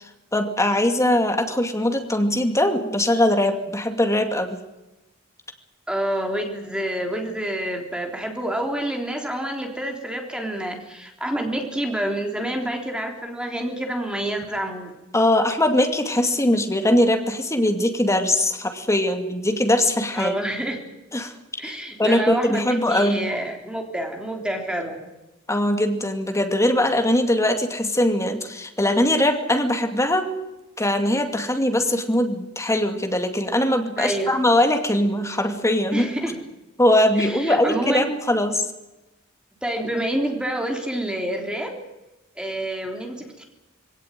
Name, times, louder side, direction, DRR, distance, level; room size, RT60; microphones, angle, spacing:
voice 1, 0.3-4.6 15.1-20.3 21.1-21.3 21.6-21.7 22.0-23.3 25.5-30.3 30.8-36.1 36.8-38.7, left 1 dB, 15° left, 6 dB, 2.4 m, -21 dB
voice 2, 5.9-15.0 20.1-20.8 21.6-25.0 34.0-34.4 35.9-36.4 37.2-38.1 39.6-41.8 42.4-43.4, right 1 dB, 5° right, 2 dB, 3.5 m, -28 dB
21.5 x 17.5 x 9.2 m, 0.99 s
head